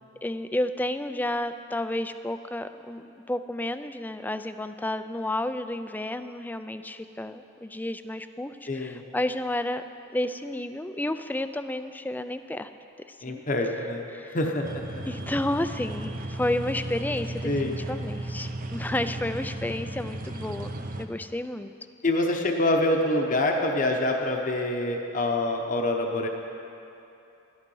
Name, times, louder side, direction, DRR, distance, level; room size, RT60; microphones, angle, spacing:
voice 1, 0.2-9.8 10.1-12.7 13.1-13.4 14.1-14.4 15.1-21.7, left 1 dB, 10° left, 10 dB, 0.3 m, -31 dB
voice 2, 8.7-9.0 13.2-14.1 14.3-15.0 17.4-17.8 22.0-26.3, left 1 dB, 40° left, 2 dB, 0.9 m, -26 dB
sound 1, 14.6-21.0, right 1 dB, 45° right, 0.7 m, -35 dB
12.5 x 11.5 x 5.5 m, 2.8 s
head